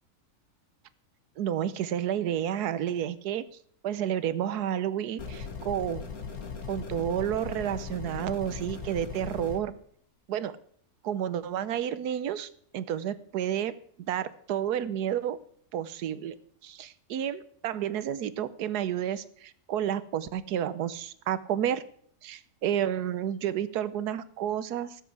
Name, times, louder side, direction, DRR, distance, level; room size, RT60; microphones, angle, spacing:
voice 1, 1.4-3.4 3.8-6.1 6.7-9.7 10.3-10.6 11.0-13.8 14.1-15.4 15.7-16.3 16.6-21.8 22.2-25.0, right 10 dB, 85° right, 15 dB, 1.3 m, -30 dB
sound 1, 5.2-9.6, left 5 dB, 70° left, 2.2 m, -38 dB
18.0 x 8.1 x 4.7 m, 0.62 s
omnidirectional pair, 1.6 m